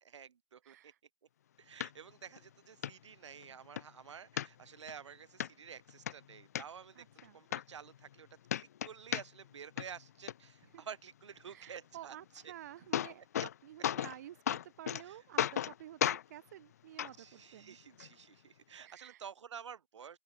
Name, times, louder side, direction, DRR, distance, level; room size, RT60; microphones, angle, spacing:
voice 1, 0.0-0.9 1.6-7.1 7.3-12.2 12.4-12.5 15.0-15.2 17.2-20.2, right 7 dB, 70° right, 2.9 m, -51 dB
voice 2, 0.6-1.0 7.0-7.4 10.7-10.8 11.5-16.0 16.3-17.8 18.8-19.2, right 12 dB, 35° right, 1.6 m, -51 dB
sound 1, 1.8-1.9 2.4-2.5 2.8-2.9 3.4-3.9 4.4-4.9 5.4-5.5 5.9-6.6 7.2-7.3 7.5-8.2 8.5-9.5 9.8-10.3 12.4-12.5 12.7-13.5 13.8-14.2 14.5-15.0 15.4-15.7 16.0-16.2 17.0-17.1 18.0-18.1, left 10 dB, 30° left, 0.5 m, -34 dB
open air
hypercardioid pair, 180°, 16 cm